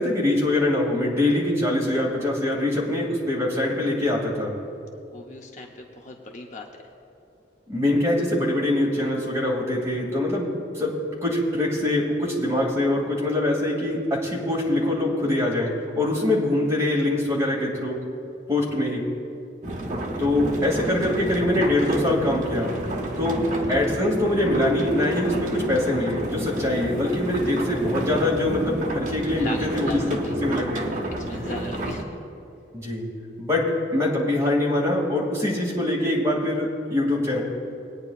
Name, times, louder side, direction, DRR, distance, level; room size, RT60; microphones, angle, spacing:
voice 1, 0.0-4.5 7.7-11.0 11.2-18.0 18.5-19.0 20.2-22.7 23.2-23.4 23.7-30.9 32.7-33.0 33.4-37.4, left 1 dB, 15° right, -4 dB, 2.4 m, -23 dB
voice 2, 5.1-6.7 29.0-30.3 31.2-32.0, left 2 dB, 40° left, 1 dB, 0.7 m, -38 dB
sound 1, 19.6-32.0, right 1 dB, 45° right, 0.9 m, -30 dB
20.5 x 9.5 x 2.4 m, 2.6 s
head